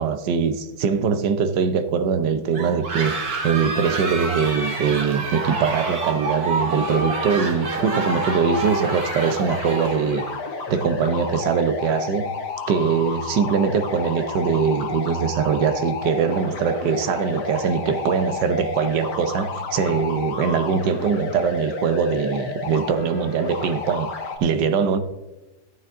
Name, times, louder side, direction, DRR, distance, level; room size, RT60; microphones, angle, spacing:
voice 1, 0.0-3.1 3.4-10.2 10.7-12.3 12.7-24.1 24.4-25.0, right 6 dB, 75° right, 1.5 m, -22 dB
sound 1, 2.5-10.4, right 3 dB, 55° right, 1.9 m, -28 dB
sound 2, 6.9-24.4, left 4 dB, 70° left, 1.9 m, -31 dB
14.0 x 9.0 x 3.6 m
omnidirectional pair, 1.9 m